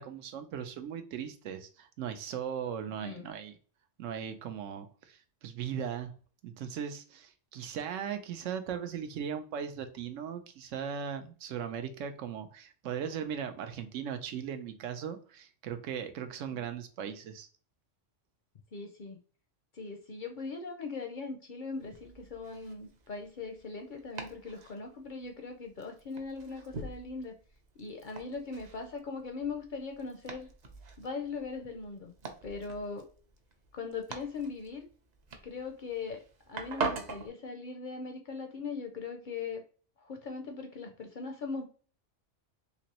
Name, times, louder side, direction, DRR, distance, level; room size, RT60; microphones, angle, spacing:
voice 1, 0.0-3.6 4.0-6.1 6.4-17.5, right 8 dB, 90° right, 8 dB, 1.0 m, -38 dB
voice 2, 2.8-3.2 16.5-16.6 18.7-19.2 19.7-27.4 27.8-30.5 31.0-32.1 32.4-33.1 33.7-34.9 35.4-36.2 36.5-39.6 40.0-41.6, left 4 dB, 55° left, 4 dB, 0.6 m, -40 dB
Domestic sounds home sounds, 21.7-37.3, right 4 dB, 50° right, 0.5 m, -44 dB
3.3 x 3.0 x 2.8 m, 0.40 s
omnidirectional pair, 1.3 m